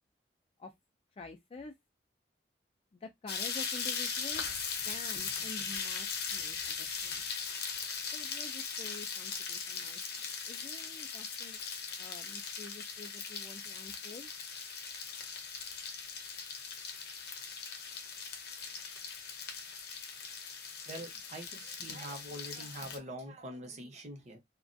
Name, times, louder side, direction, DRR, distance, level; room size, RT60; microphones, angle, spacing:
voice 1, 1.1-1.7 2.9-4.5 4.9-7.2 8.1-11.6 12.0-14.3, left 3 dB, 35° left, 0.3 m, -48 dB
sound 1, 3.3-23.0, left 6 dB, 60° left, 0.7 m, -39 dB
voice 2, 20.9-24.4, right 1 dB, 40° right, 0.7 m, -44 dB
2.3 x 2.1 x 2.5 m
head